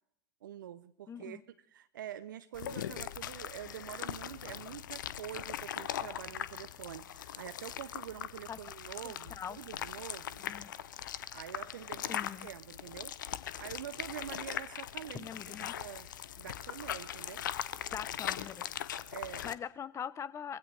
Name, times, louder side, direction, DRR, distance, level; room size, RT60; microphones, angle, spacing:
voice 1, 0.4-1.4 1.7-10.4 11.3-13.1 13.6-15.3 15.8-16.1 16.4-17.5 19.1-19.5, right 11 dB, 75° right, 12 dB, 0.6 m, -46 dB
voice 2, 1.1-1.4 8.5-8.6 9.0-9.6 10.4-10.7 12.1-12.5 15.1-15.8 17.9-18.7 19.4-20.6, left 8 dB, 25° left, 17 dB, 0.8 m, -42 dB
sound 1, 2.5-19.5, left 10 dB, 70° left, 0.7 m, -40 dB
22.5 x 16.0 x 3.4 m, 0.69 s
figure-of-eight pair, 85°, 11 cm